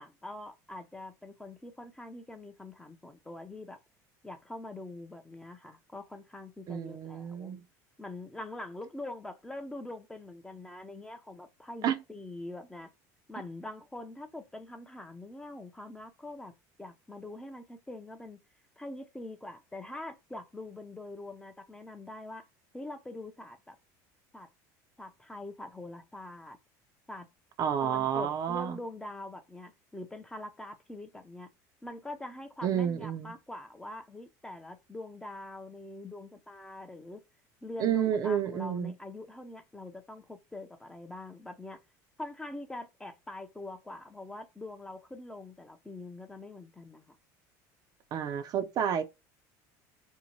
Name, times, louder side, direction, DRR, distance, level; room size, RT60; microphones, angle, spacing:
voice 1, 0.0-3.8 4.2-7.6 8.0-12.9 13.3-16.5 16.8-18.4 18.8-22.5 22.7-23.8 24.3-24.5 25.0-26.6 27.1-27.3 27.8-31.5 31.8-37.2 37.6-41.8 42.2-47.2, left 2 dB, 10° left, 0.5 m, -44 dB
voice 2, 6.7-7.6 11.8-11.9 27.6-28.8 32.6-33.3 37.8-38.9 48.1-49.0, right 9 dB, 45° right, 0.4 m, -30 dB
2.7 x 2.1 x 2.9 m
supercardioid pair, 110°, 9 cm